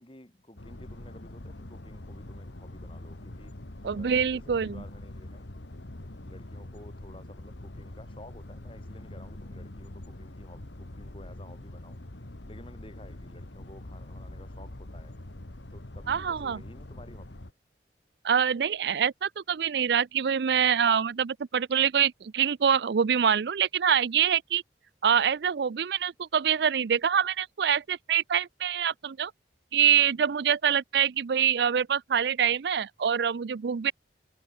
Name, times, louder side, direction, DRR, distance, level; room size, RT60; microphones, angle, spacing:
voice 1, 0.0-5.6 6.2-12.0 12.5-15.1 15.7-17.4, left 1 dB, 30° left, 4.1 m, -52 dB
sound 1, 0.6-17.5, left 1 dB, 90° left, 1.8 m, -44 dB
voice 2, 3.8-4.8 16.1-16.6 18.2-24.6 25.0-29.3 29.7-33.9, right 8 dB, 70° right, 0.4 m, -25 dB
head